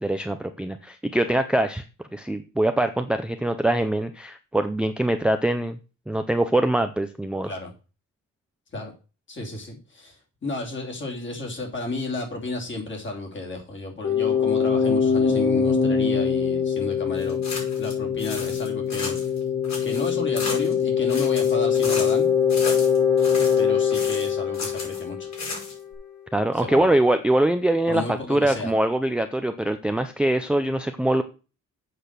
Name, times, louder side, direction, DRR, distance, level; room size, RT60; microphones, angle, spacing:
voice 1, 0.0-1.8 2.1-5.8 6.1-7.5 26.3-31.2, right 1 dB, 5° right, 7 dB, 0.5 m, -23 dB
voice 2, 9.3-17.4 17.8-19.1 19.8-22.3 23.4-25.3 26.5-27.0 27.9-28.7, left 2 dB, 35° left, 1 dB, 3.0 m, -33 dB
sound 1, 14.0-25.6, left 7 dB, 70° left, 3.2 m, -23 dB
sound 2, 17.2-17.9 18.2-19.4 19.6-20.8 21.1-22.2 22.5-23.6 23.9-25.0 25.3-25.9, left 3 dB, 55° left, 5.1 m, -34 dB
7.9 x 6.6 x 6.7 m, 0.34 s
wide cardioid pair, 165°, 33 cm